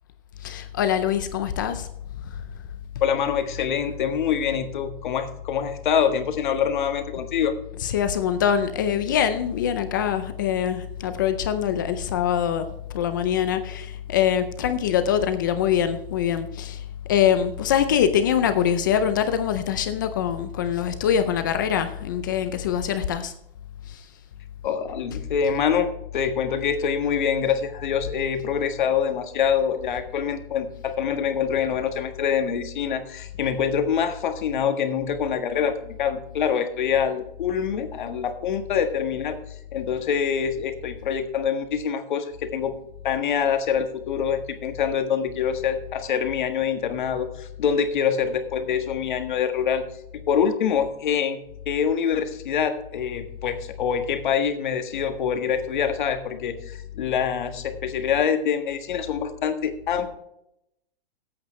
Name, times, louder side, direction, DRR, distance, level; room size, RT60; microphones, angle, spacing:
voice 1, 0.4-1.9 2.2-2.3 7.7-12.7 12.9-23.3 23.9-24.1, left 9 dB, 20° left, 10 dB, 0.5 m, -24 dB
voice 2, 3.0-7.5 24.6-39.4 39.7-42.7 43.0-49.8 50.3-51.4 51.6-60.2, left 7 dB, 55° left, 7 dB, 1.6 m, -25 dB
16.0 x 8.7 x 3.2 m, 0.79 s
hypercardioid pair, 165°, 29 cm